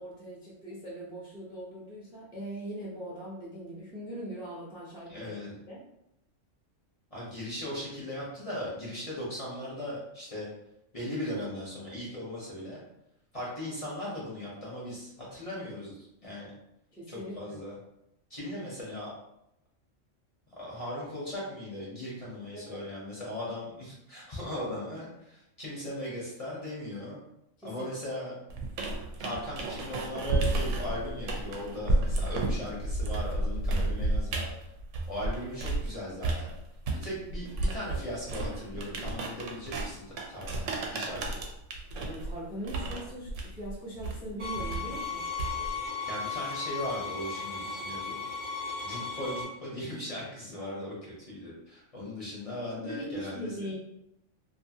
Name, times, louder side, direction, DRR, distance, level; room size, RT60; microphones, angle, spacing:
voice 1, 0.0-5.3 5.7-5.8 16.9-17.6 22.5-22.8 27.6-27.9 41.9-45.3 52.7-53.7, right 1 dB, 5° right, -6 dB, 0.4 m, -40 dB
voice 2, 5.1-5.5 7.1-10.5 10.9-12.8 13.3-16.5 17.1-17.7 18.3-19.1 20.6-27.2 27.6-28.3 29.2-34.5 35.1-36.5 36.9-41.3 46.0-48.2 48.8-53.5, left 1 dB, 35° left, -6 dB, 0.7 m, -38 dB
sound 1, 28.5-35.9 36.2-45.8, right 2 dB, 75° right, 0.9 m, -32 dB
sound 2, 44.4-49.4, left 5 dB, 25° right, 0.8 m, -36 dB
2.6 x 2.5 x 2.7 m, 0.83 s
omnidirectional pair, 1.3 m